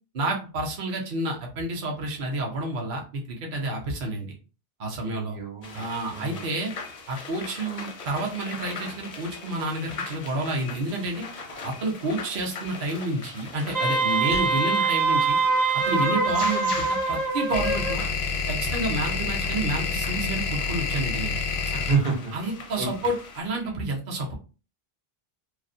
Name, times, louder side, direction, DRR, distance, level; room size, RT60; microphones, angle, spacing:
voice 1, 0.1-4.3 4.8-5.4 5.7-6.7 7.1-11.3 11.6-15.4 15.7-18.0 18.5-21.4 22.3-24.3, right 2 dB, 60° right, 0 dB, 0.7 m, -29 dB
voice 2, 5.0-6.4 21.7-22.3 22.8-23.1, right 4 dB, 80° right, 1 dB, 1.0 m, -29 dB
sound 1, 5.6-23.4, left 4 dB, 50° left, 0.5 m, -40 dB
Wind instrument woodwind instrument, 13.7-18.0, right 4 dB, 25° right, 0.6 m, -24 dB
sound 2, 14.3-14.4 16.5-23.5, left 5 dB, 80° left, 0.8 m, -28 dB
2.4 x 2.0 x 2.5 m, 0.35 s
omnidirectional pair, 1.0 m